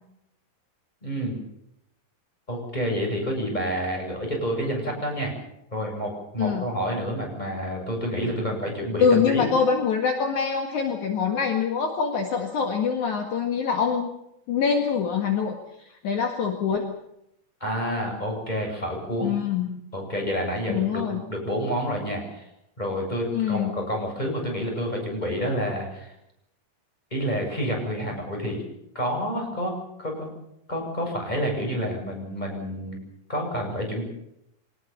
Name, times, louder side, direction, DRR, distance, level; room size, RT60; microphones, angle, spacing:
voice 1, 1.0-1.4 2.5-5.3 5.7-9.5 17.6-19.3 19.9-22.4 22.8-26.1 27.1-28.6 28.9-30.3 30.7-33.0 33.3-34.0, equal, 10° left, 1 dB, 7.8 m, -29 dB
voice 2, 9.0-14.1 14.5-16.9 19.2-19.8 20.7-21.2 23.3-23.7, left 6 dB, 60° left, 4 dB, 3.1 m, -24 dB
25.0 x 19.0 x 7.3 m, 0.80 s
omnidirectional pair, 3.9 m